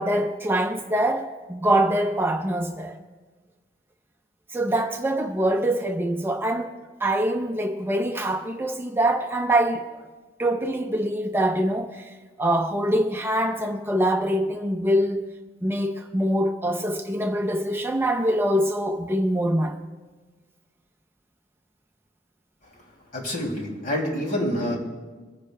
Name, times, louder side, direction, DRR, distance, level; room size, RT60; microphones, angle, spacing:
voice 1, 0.0-3.0 4.5-6.7 7.0-9.9 10.4-12.1 12.4-15.3 15.6-19.8, right 1 dB, 15° right, 0.5 m, -24 dB
voice 2, 23.1-24.8, left 1 dB, 50° left, 2.6 m, -27 dB
24.0 x 10.0 x 2.2 m
head